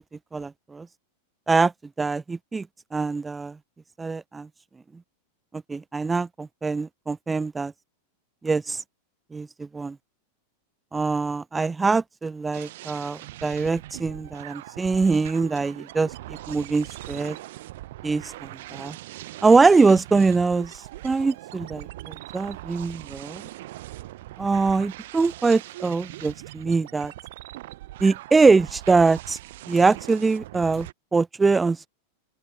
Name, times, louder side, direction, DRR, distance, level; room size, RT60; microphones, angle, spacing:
voice 1, 0.3-0.9 1.5-1.7 2.0-2.7 2.9-3.6 4.0-4.5 5.7-7.7 8.4-8.8 9.3-10.0 10.9-17.4 18.0-19.0 19.4-23.4 24.4-27.1 28.0-29.4 29.7-31.9, right 4 dB, 10° right, 0.4 m, -23 dB
sound 1, 12.5-30.9, right 16 dB, 55° right, 0.9 m, -41 dB
open air
figure-of-eight pair, 90°, 0 cm